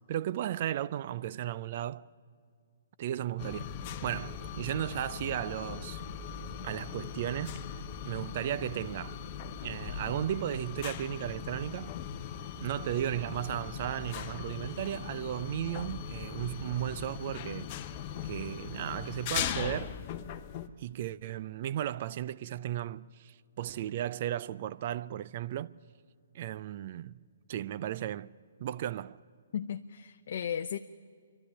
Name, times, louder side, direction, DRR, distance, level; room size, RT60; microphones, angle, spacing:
voice 1, 0.1-2.1 3.0-3.7 4.0-6.0 6.6-7.6 8.0-9.2 9.6-11.9 12.6-17.7 18.2-20.0 20.8-25.8 26.3-27.2 27.5-28.3 28.6-29.2, right 11 dB, 45° right, 0.5 m, -35 dB
sound 1, 3.4-20.7, left 8 dB, 35° left, 0.9 m, -40 dB
voice 2, 29.5-30.8, left 8 dB, 60° left, 0.6 m, -35 dB
27.0 x 12.0 x 9.8 m
hypercardioid pair, 150°, 0 cm